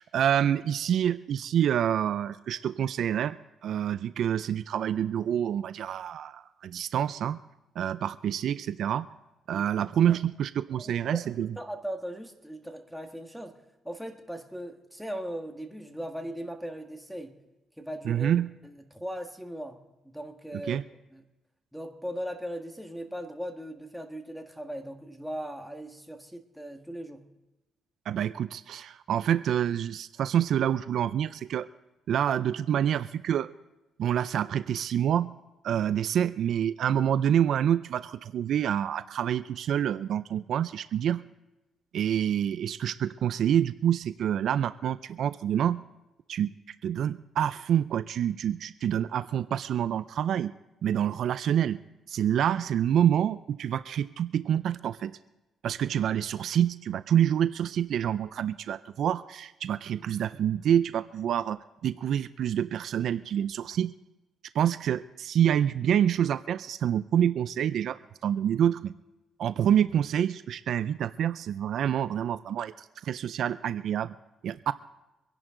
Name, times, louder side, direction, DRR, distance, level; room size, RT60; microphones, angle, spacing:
voice 1, 0.0-3.4 3.6-7.4 7.8-9.1 9.5-11.5 18.0-18.5 20.7-20.8 28.1-31.7 32.1-33.5 34.0-35.3 35.6-41.2 41.9-45.8 46.3-46.5 46.8-50.5 50.8-51.8 52.1-55.2 55.6-63.9 64.5-68.9 69.4-74.2 74.4-74.7, right 9 dB, 70° right, 14 dB, 0.4 m, -27 dB
voice 2, 10.7-17.3 17.8-18.3 18.6-19.8 20.0-20.8 21.1-21.2 21.7-27.2, equal, ahead, 3 dB, 1.6 m, -38 dB
24.5 x 10.5 x 3.8 m, 1.0 s
cardioid pair, 90°, 0 cm